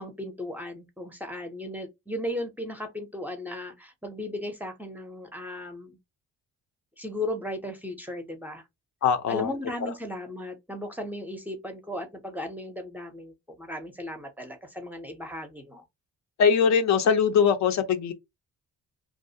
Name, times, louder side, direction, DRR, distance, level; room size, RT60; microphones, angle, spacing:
voice 1, 0.0-6.0 7.0-8.6 9.3-15.8, left 1 dB, 5° right, 0.5 m, -36 dB
voice 2, 9.0-9.5 9.8-9.9 16.4-18.1, left 6 dB, 65° left, 0.6 m, -22 dB
2.4 x 2.0 x 2.7 m
cardioid pair, 90°, 30 cm